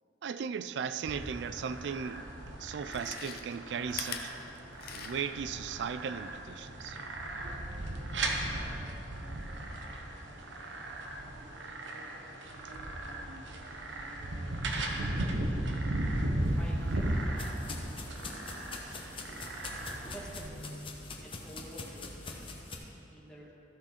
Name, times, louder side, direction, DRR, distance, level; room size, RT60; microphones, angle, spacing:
voice 1, 0.2-2.2 2.6-4.4 4.9-7.0 18.5-19.0, right 7 dB, 70° right, 13 dB, 0.3 m, -37 dB
sound 1, 1.0-20.5, right 1 dB, 90° right, 1.0 m, -36 dB
Chewing mastication, 2.0-2.1 2.8-5.4 5.8-5.9, left 7 dB, 55° left, 0.7 m, -42 dB
sound 2, 16.4-22.8, left 3 dB, 30° left, 0.9 m, -44 dB
voice 2, 16.6-17.5 20.1-20.9 21.2-22.6 23.1-23.5, right 1 dB, 5° left, -4 dB, 1.4 m, -49 dB
14.0 x 6.2 x 4.3 m, 2.9 s
head